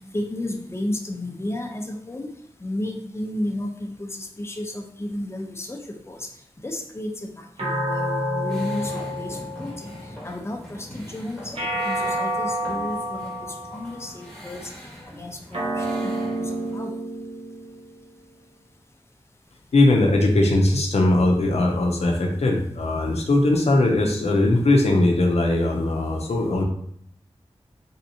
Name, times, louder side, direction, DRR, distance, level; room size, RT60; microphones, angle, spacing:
voice 1, 0.1-2.3 2.6-5.8 6.1-6.3 6.6-10.0 10.2-13.3 13.7-14.6 15.2-17.0, left 1 dB, 25° left, 2 dB, 0.6 m, -32 dB
sound 1, 7.6-10.2 11.6-14.1 15.5-18.1, equal, 60° right, 1.1 m, -29 dB
sound 2, 8.5-16.8, equal, ahead, 1.2 m, -42 dB
voice 2, 19.7-26.6, left 2 dB, 80° left, 1 dB, 0.5 m, -20 dB
3.4 x 2.7 x 2.7 m, 0.67 s
wide cardioid pair, 50°, 11 cm